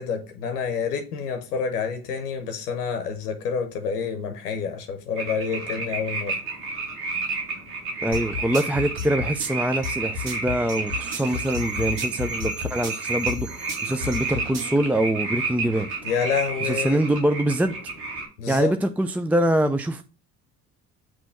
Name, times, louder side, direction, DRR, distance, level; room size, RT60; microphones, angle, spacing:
voice 1, 0.0-6.4 16.0-17.1 18.4-18.7, left 6 dB, 90° left, 0.8 m, -28 dB
sound 1, 5.2-18.3, right 3 dB, 85° right, 1.3 m, -31 dB
voice 2, 8.0-15.9 16.6-17.8 18.5-20.0, right 1 dB, 5° right, 0.4 m, -24 dB
sound 2, 8.1-14.8, left 4 dB, 55° right, 1.4 m, -32 dB
sound 3, 10.8-16.6, right 4 dB, 25° right, 0.8 m, -44 dB
6.0 x 3.0 x 5.7 m
hypercardioid pair, 45°, 45 cm